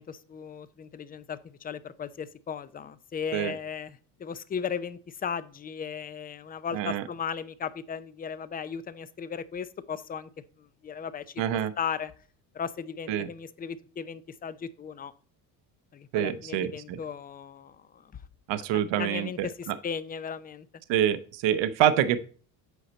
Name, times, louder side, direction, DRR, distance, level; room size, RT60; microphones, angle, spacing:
voice 1, 0.0-10.3 10.6-11.4 11.8-12.1 12.5-15.1 15.9-18.1 18.7-20.7, left 7 dB, 20° left, 15 dB, 0.4 m, -36 dB
voice 2, 6.7-7.0 11.4-11.7 13.1-13.3 16.1-17.0 18.5-19.7 20.9-22.2, right 10 dB, 65° right, 13 dB, 0.8 m, -26 dB
8.2 x 5.6 x 4.2 m, 0.43 s
supercardioid pair, 95°, 47 cm